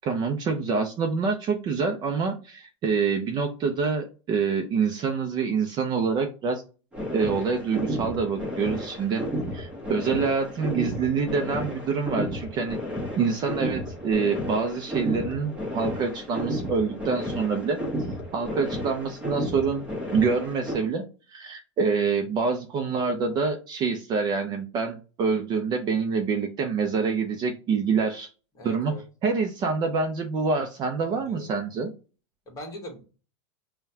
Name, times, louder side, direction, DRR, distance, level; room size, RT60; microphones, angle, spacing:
voice 1, 0.0-6.6 7.1-12.8 13.2-17.8 18.3-19.8 20.1-21.0 21.3-28.3 28.6-31.9, right 5 dB, 30° right, 4 dB, 0.6 m, -26 dB
sound 1, 6.9-20.8, equal, 5° right, 1.0 m, -32 dB
voice 2, 28.5-29.0 31.1-31.5 32.4-33.0, equal, 20° left, 1 dB, 1.5 m, -41 dB
5.4 x 2.3 x 2.7 m, 0.34 s
supercardioid pair, 145°, 15 cm